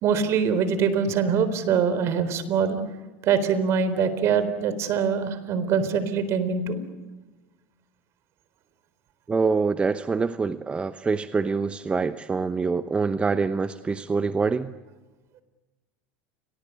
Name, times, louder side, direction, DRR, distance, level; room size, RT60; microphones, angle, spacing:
voice 1, 0.0-2.8 3.2-6.8, right 6 dB, 45° right, 12 dB, 4.0 m, -23 dB
voice 2, 9.3-14.7, right 4 dB, 15° right, 11 dB, 0.9 m, -25 dB
29.5 x 23.0 x 8.3 m, 1.2 s
supercardioid pair, 115°, 6 cm